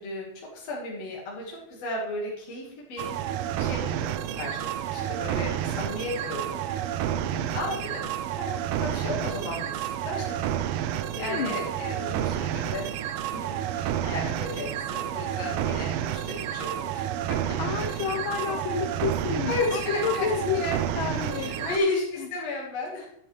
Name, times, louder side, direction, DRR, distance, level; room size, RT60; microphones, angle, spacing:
voice 1, 0.0-3.1 3.6-6.6 7.5-10.5 11.2-17.4 17.8-18.0 18.5-18.6 19.5-20.3 20.5-20.8 21.3-23.1, left 2 dB, 60° left, -4 dB, 2.8 m, -34 dB
sound 1, 3.0-21.8, right 11 dB, 80° right, 1.5 m, -30 dB
voice 2, 7.1-7.5 11.1-11.6 17.6-20.6 20.9-21.8 22.2-22.3, left 7 dB, 90° left, 5 dB, 1.1 m, -30 dB
11.0 x 9.3 x 3.2 m, 0.71 s
omnidirectional pair, 3.4 m